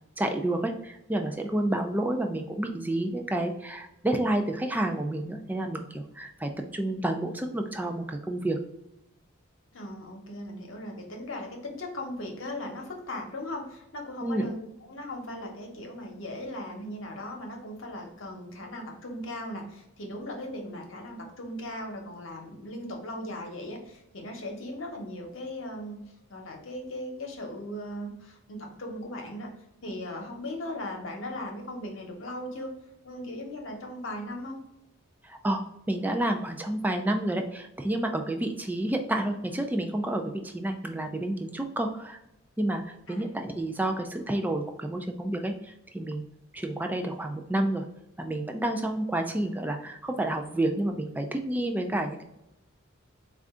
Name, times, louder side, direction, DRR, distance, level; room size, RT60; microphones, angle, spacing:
voice 1, 0.2-8.6 14.2-14.5 35.2-42.2 42.6-46.2 46.5-47.8 48.2-52.2, right 1 dB, 10° right, 5 dB, 0.3 m, -30 dB
voice 2, 9.7-14.6 14.9-26.0 26.3-29.5 29.8-32.7 33.0-34.6 43.1-43.3, left 1 dB, 65° left, 2 dB, 0.9 m, -38 dB
4.3 x 2.5 x 3.6 m, 0.86 s
head